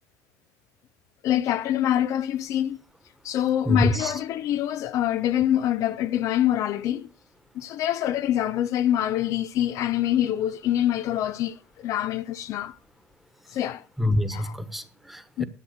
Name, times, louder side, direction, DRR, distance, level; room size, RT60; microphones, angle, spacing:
voice 1, 1.2-2.8 3.2-7.1 7.5-12.8 13.5-13.8 14.3-14.5 15.4-15.5, left 11 dB, 55° left, 0.6 m, -25 dB
voice 2, 3.7-4.1 14.0-15.4, left 1 dB, 5° right, 1.4 m, -25 dB
11.0 x 7.8 x 6.4 m
supercardioid pair, 110°, 7 cm